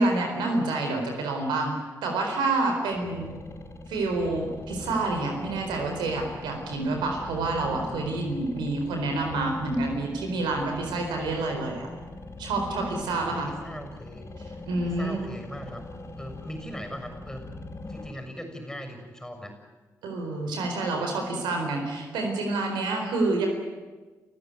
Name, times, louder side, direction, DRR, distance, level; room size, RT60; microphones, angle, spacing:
voice 1, 0.0-1.7 2.0-3.3 3.9-11.9 12.4-13.5 14.7-15.2 20.0-23.5, right 2 dB, 80° right, 3 dB, 4.3 m, -28 dB
sound 1, 2.9-18.1, left 2 dB, 40° left, 4.8 m, -42 dB
voice 2, 13.3-14.3 14.8-15.8 16.2-17.5 17.9-19.5, equal, 10° left, 5 dB, 6.7 m, -39 dB
28.5 x 15.0 x 9.5 m, 1.3 s
hypercardioid pair, 40°, 8 cm